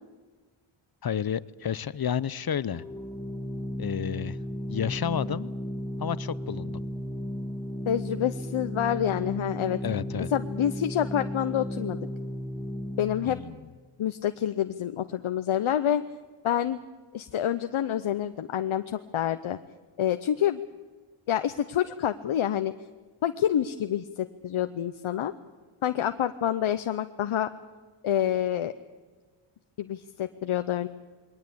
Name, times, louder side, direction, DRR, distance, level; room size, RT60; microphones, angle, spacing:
voice 1, 1.0-2.8 3.8-4.4 4.7-5.5 6.0-6.8 9.8-10.3 13.2-13.7, left 8 dB, 45° left, 18 dB, 0.8 m, -31 dB
Organ, 2.7-13.5, equal, 5° left, 1.4 m, -35 dB
voice 2, 7.9-9.8 10.3-12.0 13.0-13.4 14.0-16.0 16.4-16.8 17.1-19.6 20.0-20.6 21.3-22.7 23.2-25.3 25.8-27.5 28.0-28.7 29.8-30.9, left 10 dB, 75° left, 9 dB, 0.8 m, -27 dB
21.5 x 18.5 x 8.5 m, 1.4 s
wide cardioid pair, 75°, 49 cm